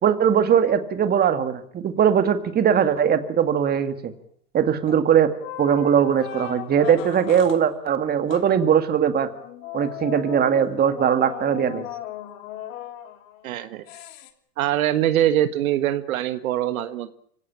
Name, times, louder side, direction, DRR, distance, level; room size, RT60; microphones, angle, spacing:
voice 1, 0.0-4.1 4.5-5.3 5.6-9.3 9.7-11.9, right 8 dB, 20° right, 10 dB, 2.0 m, -20 dB
sound 1, 4.9-5.1 5.4-7.6 8.3-8.5 9.3-13.4 13.9-14.3, left 12 dB, 55° left, 3.2 m, -36 dB
voice 2, 13.4-13.8 14.6-17.1, right 12 dB, 60° right, 12 dB, 1.6 m, -23 dB
25.0 x 17.0 x 8.7 m, 0.64 s
hypercardioid pair, 120°, 47 cm